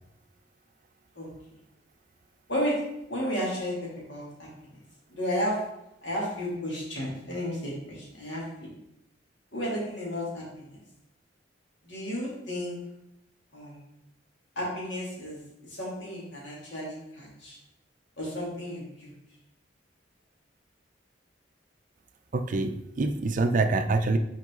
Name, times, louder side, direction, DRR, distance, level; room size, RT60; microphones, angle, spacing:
voice 1, 2.5-2.8 3.1-3.8 4.1-4.5 5.1-5.6 6.0-8.7 9.5-10.7 11.8-12.8 13.5-13.8 14.6-15.4 15.8-17.5 18.2-19.1, equal, 80° left, -5 dB, 2.5 m, -32 dB
voice 2, 22.3-24.2, right 3 dB, 45° right, 7 dB, 0.4 m, -25 dB
6.0 x 4.6 x 3.7 m, 0.82 s
head